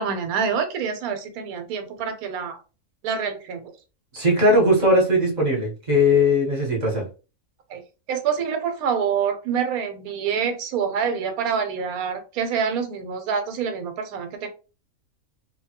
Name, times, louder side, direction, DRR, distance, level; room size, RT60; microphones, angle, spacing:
voice 1, 0.0-2.6 3.0-3.7 7.7-7.8 8.1-14.5, right 6 dB, 75° right, 7 dB, 1.1 m, -26 dB
voice 2, 4.1-7.1, left 1 dB, 35° right, -1 dB, 0.9 m, -19 dB
2.9 x 2.2 x 2.8 m, 0.33 s
omnidirectional pair, 1.6 m